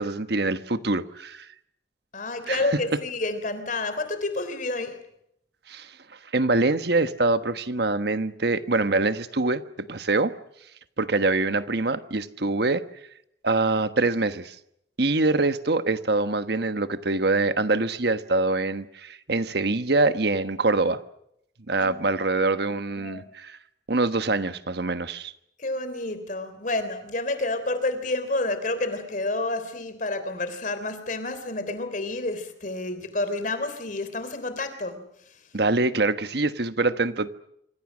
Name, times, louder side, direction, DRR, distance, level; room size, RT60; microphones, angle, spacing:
voice 1, 0.0-1.5 2.5-2.6 5.7-5.9 6.3-10.3 11.0-12.8 13.4-14.5 15.0-21.0 21.7-23.6 23.9-25.3 35.5-37.3, right 3 dB, 60° right, 11 dB, 1.3 m, -24 dB
voice 2, 2.1-5.0 21.8-22.2 23.0-23.3 25.6-35.0, left 2 dB, 45° left, 10 dB, 3.5 m, -29 dB
26.5 x 25.5 x 6.3 m, 0.76 s
head